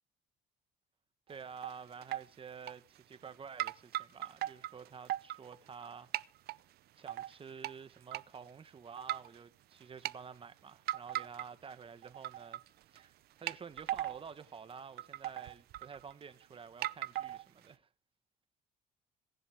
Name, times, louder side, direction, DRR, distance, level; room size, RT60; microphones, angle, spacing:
voice 1, 1.3-6.1 6.9-12.6 12.9-17.9, right 6 dB, 30° right, 1.4 m, -50 dB
sound 1, 1.3-1.8 2.0-2.3 2.7-3.3 3.6-5.9 6.1-6.6 7.1-7.7 8.1-8.2 9.0-9.4 9.8-10.1 10.9-11.7 12.0-12.7 13.0-13.1 13.5-14.3 14.7-14.8 15.0-16.3 16.8-17.7, right 13 dB, 70° right, 0.7 m, -38 dB
26.5 x 11.0 x 3.6 m
cardioid pair, 110°, 17 cm